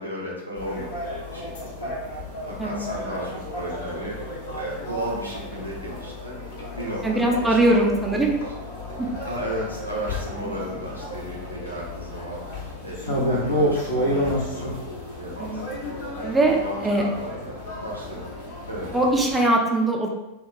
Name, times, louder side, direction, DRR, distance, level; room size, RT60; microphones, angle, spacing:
voice 1, 0.0-1.5 1.8-2.0 2.5-4.2 4.5-6.4 6.8-8.2 9.3-12.4 12.8-14.9 15.2-16.0 16.4-17.5 17.8-18.3 18.7-18.9, equal, 90° right, -5 dB, 0.6 m, -34 dB
sound 1, 0.6-19.4, left 1 dB, 55° left, 0.7 m, -31 dB
voice 2, 7.0-8.3 9.0-9.1 10.4-10.6 15.4-15.6 16.2-16.6 16.8-17.0 18.9-20.1, right 2 dB, 10° right, -1 dB, 0.4 m, -21 dB
2.8 x 2.1 x 2.5 m, 0.96 s
figure-of-eight pair, 90°, 0 cm